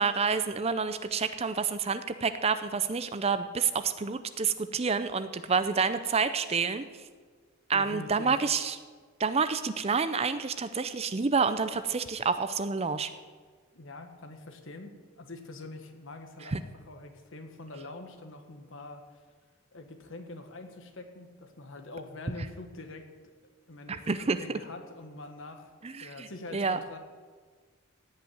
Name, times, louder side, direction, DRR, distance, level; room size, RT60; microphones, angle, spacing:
voice 1, 0.0-6.8 7.7-8.8 9.2-13.1 16.5-16.6 23.9-24.4 25.8-26.8, right 5 dB, 30° right, 12 dB, 0.5 m, -28 dB
voice 2, 7.7-8.4 13.7-19.0 19.7-23.1 23.7-25.7 26.0-27.0, left 2 dB, 60° left, 6 dB, 1.4 m, -44 dB
16.5 x 5.7 x 9.0 m, 1.5 s
head